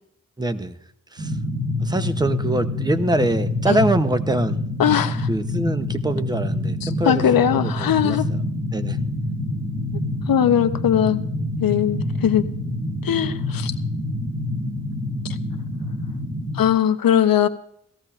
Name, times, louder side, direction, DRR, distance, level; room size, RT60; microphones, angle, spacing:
voice 1, 0.4-0.7 1.1-1.3 1.8-4.6 5.3-7.2 7.5-8.2 8.7-9.0, right 1 dB, 10° right, 11 dB, 0.7 m, -24 dB
sound 1, 1.2-16.6, left 2 dB, 50° right, 5.4 m, -26 dB
voice 2, 4.8-5.3 6.8-8.2 10.3-11.2 11.6-12.5 13.0-13.7 15.2-15.4 16.5-17.5, left 9 dB, 80° left, 10 dB, 0.7 m, -20 dB
17.5 x 14.5 x 2.4 m, 0.69 s
wide cardioid pair, 85°, 34 cm